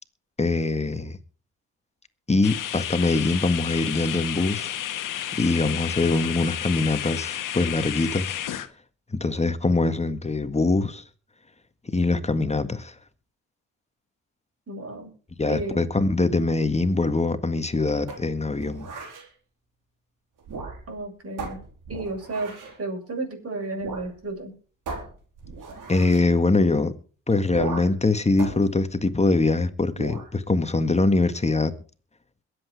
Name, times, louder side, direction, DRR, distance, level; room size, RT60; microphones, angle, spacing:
voice 1, 0.4-1.2 2.3-4.8 5.3-8.3 9.1-11.0 11.9-12.9 15.4-18.9 25.9-27.0 27.3-31.8, left 3 dB, 20° left, 1.7 m, -23 dB
sound 1, 2.4-8.7, left 11 dB, 65° left, 1.5 m, -31 dB
voice 2, 5.5-5.8 14.7-15.1 15.5-15.8 20.9-21.6 21.9-24.5, right 2 dB, 45° right, 7.9 m, -33 dB
sound 2, 18.1-19.3 20.4-21.0 21.4-22.8 23.8-24.1 24.4-24.5 24.9-26.3 27.5-28.0 28.4-29.5 29.9-30.3, right 4 dB, 65° right, 4.2 m, -37 dB
22.0 x 8.4 x 4.8 m
hypercardioid pair, 55°, 34 cm